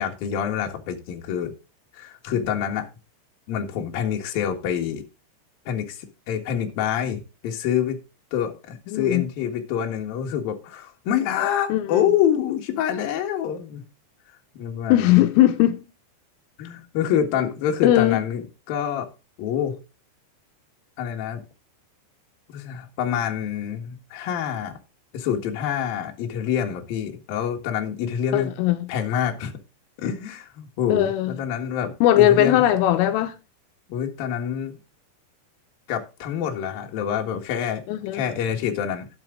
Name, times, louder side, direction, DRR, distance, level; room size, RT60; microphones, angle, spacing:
voice 1, 0.0-1.5 1.9-2.9 3.5-5.0 5.7-8.0 8.3-13.8 14.5-15.2 16.6-19.1 19.4-19.8 21.0-21.4 22.5-24.7 25.1-28.5 28.9-29.5 30.0-32.6 33.9-34.8 35.9-37.8 38.1-39.1, left 9 dB, 60° left, 2.8 m, -26 dB
voice 2, 8.9-9.2 11.7-12.1 14.9-15.9 17.8-18.2 28.3-28.9 30.9-31.3 32.0-33.3 37.9-38.2, left 13 dB, 85° left, 3.3 m, -19 dB
12.0 x 8.0 x 3.8 m
omnidirectional pair, 5.9 m